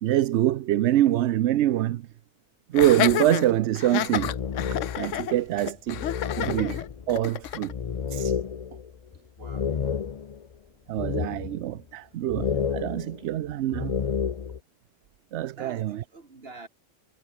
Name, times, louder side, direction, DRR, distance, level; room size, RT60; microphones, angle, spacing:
voice 1, 0.0-2.0 2.7-4.3 5.0-6.1 6.4-7.7 8.1-8.4 10.9-14.0 15.3-16.0, right 13 dB, 70° right, 0.8 m, -25 dB
Laughter, 2.7-7.7, left 11 dB, 75° left, 1.1 m, -30 dB
sound 1, 3.9-5.2 5.6-5.7 5.9-10.5 11.0-11.8 12.3-14.6, left 7 dB, 40° left, 0.5 m, -31 dB
voice 2, 9.4-9.7 15.6-16.7, right 3 dB, 50° right, 3.0 m, -46 dB
omnidirectional pair, 1.3 m